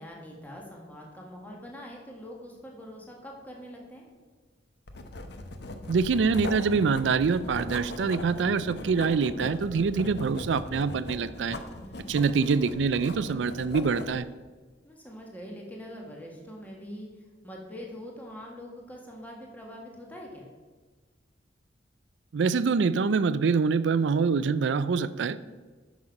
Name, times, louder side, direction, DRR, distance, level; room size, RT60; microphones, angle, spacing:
voice 1, 0.0-4.0 11.8-12.1 14.8-17.1 17.4-20.5, equal, 10° left, -2 dB, 1.6 m, -43 dB
Writing, 4.9-14.2, left 2 dB, 65° left, 0.8 m, -39 dB
voice 2, 5.9-11.6 12.1-14.3 22.3-25.4, right 5 dB, 75° right, 15 dB, 0.4 m, -25 dB
9.6 x 6.2 x 5.2 m, 1.3 s
head